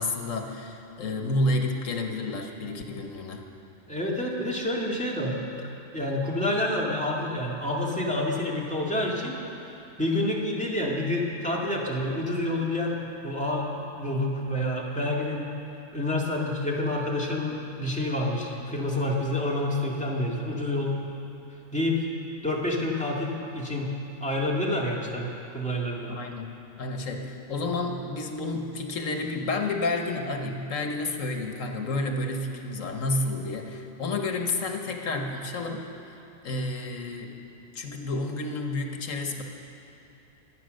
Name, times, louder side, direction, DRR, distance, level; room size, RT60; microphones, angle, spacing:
voice 1, 0.0-3.4 26.1-36.2 36.4-37.3 37.7-39.4, left 2 dB, 80° left, 3 dB, 1.6 m, -30 dB
voice 2, 3.9-5.7 5.9-9.4 10.0-15.5 15.9-21.0 21.7-22.0 22.4-23.9 24.2-26.1, left 1 dB, 5° left, -4 dB, 2.1 m, -28 dB
24.5 x 8.7 x 6.4 m, 2.9 s
omnidirectional pair, 1.3 m